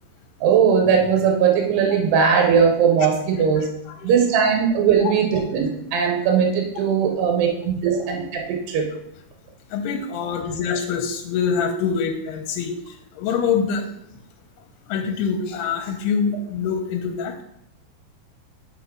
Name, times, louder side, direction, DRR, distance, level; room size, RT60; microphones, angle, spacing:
voice 1, 0.4-3.7 4.0-8.9, right 7 dB, 85° right, 2 dB, 3.0 m, -19 dB
voice 2, 3.5-4.1 5.0-5.4 9.7-13.8 14.9-17.3, left 6 dB, 85° left, 4 dB, 2.7 m, -25 dB
7.2 x 4.1 x 4.9 m, 0.79 s
omnidirectional pair, 4.6 m